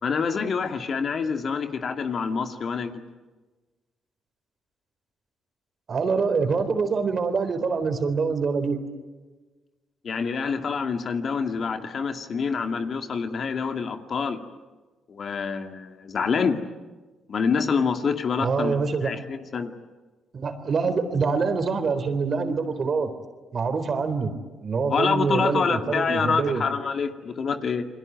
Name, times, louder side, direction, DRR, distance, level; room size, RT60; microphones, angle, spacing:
voice 1, 0.0-3.0 10.0-14.4 15.1-16.6 17.3-18.7 19.0-19.7 24.9-27.9, left 5 dB, 50° left, 6 dB, 2.2 m, -26 dB
voice 2, 5.9-8.8 18.4-19.1 20.3-23.1 23.5-24.3 24.6-26.6, right 4 dB, 45° right, 9 dB, 3.9 m, -25 dB
29.0 x 22.0 x 9.4 m, 1.3 s
cardioid pair, 90°, 0 cm